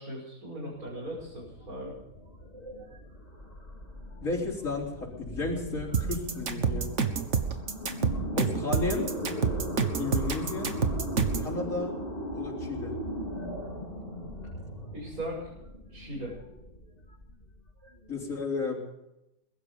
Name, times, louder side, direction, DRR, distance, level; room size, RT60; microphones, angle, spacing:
voice 1, 0.0-1.9 14.9-15.4 15.9-16.3, right 1 dB, 75° right, -6 dB, 6.7 m, -38 dB
sound 1, 0.6-18.4, equal, 35° left, 3.2 m, -39 dB
voice 2, 4.2-6.9 8.3-9.1 10.0-10.7 11.4-12.0 12.3-12.9 18.1-18.8, left 3 dB, 60° left, -3 dB, 4.4 m, -33 dB
sound 2, 5.9-11.5, right 6 dB, 55° right, 1.8 m, -27 dB
21.5 x 12.5 x 5.3 m, 0.88 s
omnidirectional pair, 1.5 m